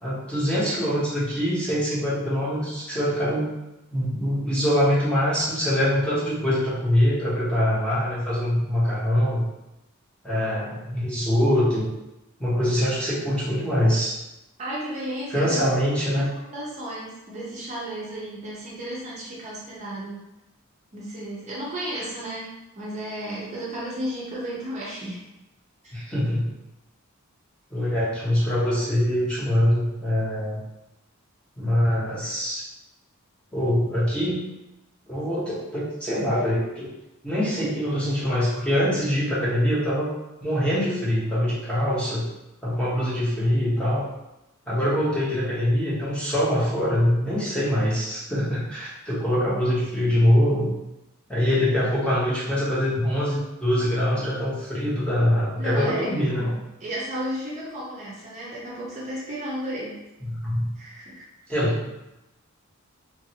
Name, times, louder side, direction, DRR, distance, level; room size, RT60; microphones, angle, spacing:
voice 1, 0.0-3.5 3.9-9.4 10.2-11.9 12.4-14.1 15.3-16.3 25.9-26.5 27.7-30.6 31.6-32.6 33.5-34.4 35.1-36.9 37.2-40.1 40.4-42.2 42.6-44.1 44.7-50.7 51.3-56.5 60.2-60.7 61.5-61.9, equal, 5° left, -9 dB, 0.9 m, -23 dB
voice 2, 14.6-15.6 16.1-20.2 20.9-25.2 25.8-26.0 55.6-56.1 56.8-60.0 60.7-61.2, right 1 dB, 35° right, -7 dB, 0.6 m, -33 dB
3.0 x 2.6 x 2.8 m, 0.94 s
head